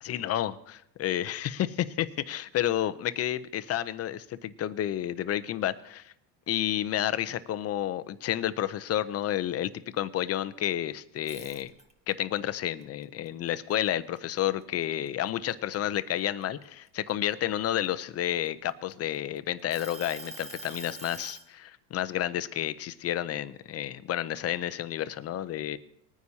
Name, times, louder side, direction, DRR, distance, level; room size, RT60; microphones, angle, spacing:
voice 1, 0.0-6.1 6.5-11.7 12.1-25.8, left 12 dB, 30° left, 14 dB, 0.5 m, -30 dB
sound 1, 11.2-12.1 12.6-14.4 14.8-15.1 15.5-17.3 18.0-19.2 19.7-21.5, right 2 dB, 15° right, 1.1 m, -44 dB
20.0 x 9.5 x 2.8 m, 0.76 s
supercardioid pair, 120°, 48 cm